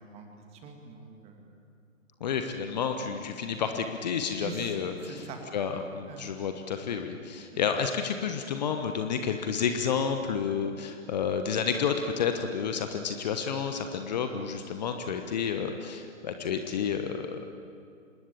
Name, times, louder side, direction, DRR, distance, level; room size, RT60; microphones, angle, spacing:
voice 1, 0.0-1.5 4.4-4.8 5.0-5.4 6.1-6.3, right 4 dB, 15° right, 3 dB, 2.4 m, -44 dB
voice 2, 2.2-5.2 5.5-17.5, left 6 dB, 35° left, 6 dB, 1.2 m, -30 dB
26.5 x 20.0 x 8.7 m, 2.4 s
figure-of-eight pair, 130°, 39 cm